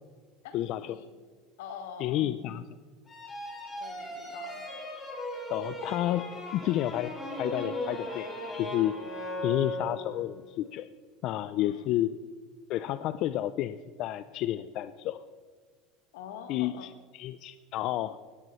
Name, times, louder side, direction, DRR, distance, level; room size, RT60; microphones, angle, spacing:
voice 1, 0.5-1.0 2.0-2.7 5.5-7.1 7.4-9.0 9.4-10.9 11.2-12.1 12.7-15.2 16.5-18.2, left 13 dB, 55° left, 13 dB, 0.4 m, -31 dB
voice 2, 1.6-2.2 3.8-4.6 11.6-11.9 16.1-16.9, left 7 dB, 85° left, 7 dB, 1.4 m, -44 dB
sound 1, 3.1-10.3, left 1 dB, 25° left, 3.5 m, -37 dB
17.5 x 10.5 x 3.1 m, 1.5 s
supercardioid pair, 120°, 0 cm